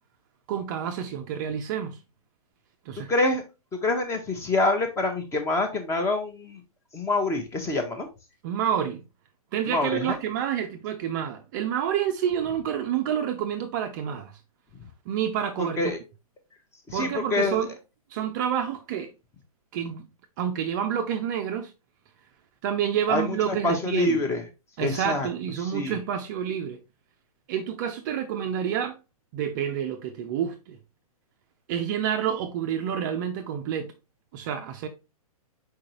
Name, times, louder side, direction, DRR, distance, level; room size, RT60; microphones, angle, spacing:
voice 1, 0.5-2.0 2.9-3.1 8.4-9.0 9.5-14.3 15.1-15.9 16.9-17.7 18.1-19.1 19.7-20.0 20.4-21.7 22.6-24.2 24.8-26.8 27.5-29.0 29.3-30.8 31.7-33.9 34.3-34.9, right 9 dB, 30° right, 0.5 m, -28 dB
voice 2, 3.1-3.4 3.7-6.6 6.9-8.1 9.7-10.2 15.6-16.0 16.9-17.6 23.1-24.4 24.8-25.3 25.6-26.0, left 2 dB, 15° left, 0.8 m, -26 dB
4.7 x 3.7 x 2.9 m
figure-of-eight pair, 125°, 19 cm